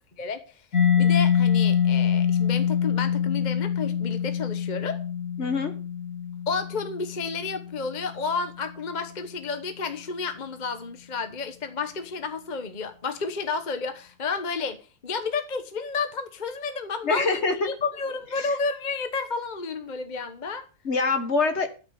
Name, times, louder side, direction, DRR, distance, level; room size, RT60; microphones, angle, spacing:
Mallet percussion, 0.7-8.2, left 8 dB, 65° left, 2.7 m, -25 dB
voice 1, 1.0-5.0 6.5-20.7, left 4 dB, 35° left, 1.2 m, -31 dB
voice 2, 5.4-5.8 17.0-17.7 18.4-18.5 20.8-21.7, left 3 dB, 50° left, 1.7 m, -25 dB
12.5 x 6.7 x 6.7 m
omnidirectional pair, 1.5 m